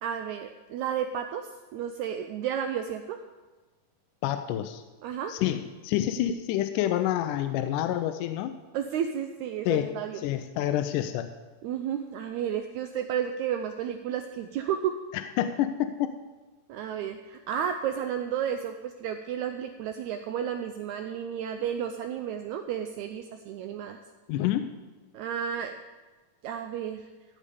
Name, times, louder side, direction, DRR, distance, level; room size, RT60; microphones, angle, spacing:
voice 1, 0.0-3.2 5.0-5.3 8.7-10.2 11.6-14.9 16.7-24.0 25.1-25.7 26.4-27.1, right 9 dB, 85° right, 7 dB, 1.7 m, -32 dB
voice 2, 4.2-4.8 5.3-8.5 9.7-11.3 15.1-16.1 24.3-24.7, left 12 dB, 80° left, 8 dB, 2.0 m, -28 dB
15.0 x 5.1 x 8.3 m, 1.3 s
omnidirectional pair, 4.0 m